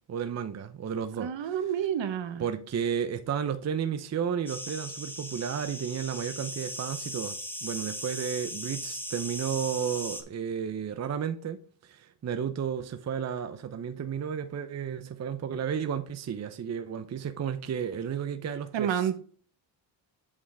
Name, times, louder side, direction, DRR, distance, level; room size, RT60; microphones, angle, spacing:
voice 1, 0.1-1.6 2.4-7.3 7.6-19.1, right 8 dB, 35° right, 0.7 m, -33 dB
voice 2, 1.2-2.4 18.7-19.2, right 9 dB, 60° right, 1.2 m, -29 dB
sound 1, 4.5-10.2, left 1 dB, 5° left, 1.1 m, -38 dB
8.5 x 5.1 x 3.4 m
cardioid pair, 90°, 49 cm